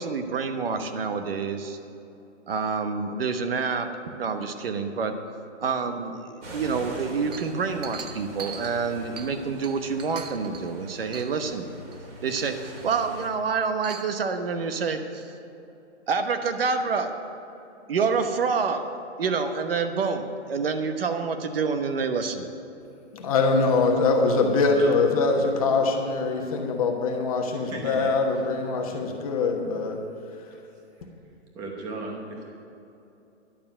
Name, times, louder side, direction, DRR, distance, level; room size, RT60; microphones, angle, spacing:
voice 1, 0.0-1.8 2.5-3.9 4.2-5.1 5.6-11.7 12.2-15.3 16.1-17.1 17.9-18.8 19.2-22.4, right 5 dB, 55° right, 7 dB, 1.1 m, -27 dB
sound 1, 6.4-13.3, right 1 dB, 80° right, 3.4 m, -42 dB
Chink clink, 7.3-9.4 9.6-10.7 11.1-11.5 11.9-12.0 12.4-12.9 13.6-14.2, right 6 dB, 35° right, 0.5 m, -41 dB
voice 2, 23.1-30.0 30.4-30.5, left 3 dB, 30° left, 2 dB, 1.2 m, -23 dB
voice 3, 27.4-28.1 30.5-30.6 31.0-32.5, right 2 dB, 10° right, 0 dB, 1.0 m, -37 dB
11.5 x 6.7 x 8.9 m, 2.9 s
hypercardioid pair, 165°, 35 cm